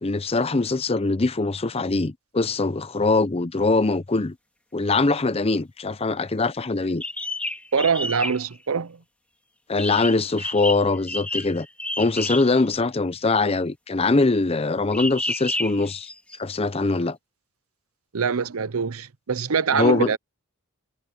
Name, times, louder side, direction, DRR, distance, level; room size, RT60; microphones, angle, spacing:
voice 1, 0.0-4.3 4.7-7.0 9.7-11.7 12.0-16.1 16.4-17.2 19.7-20.1, left 3 dB, 25° left, 0.6 m, -22 dB
sound 1, 7.0-8.5 9.8-12.7 14.9-16.4, left 1 dB, 5° left, 2.1 m, -30 dB
voice 2, 7.7-9.0 18.1-20.2, right 5 dB, 80° right, 0.7 m, -24 dB
head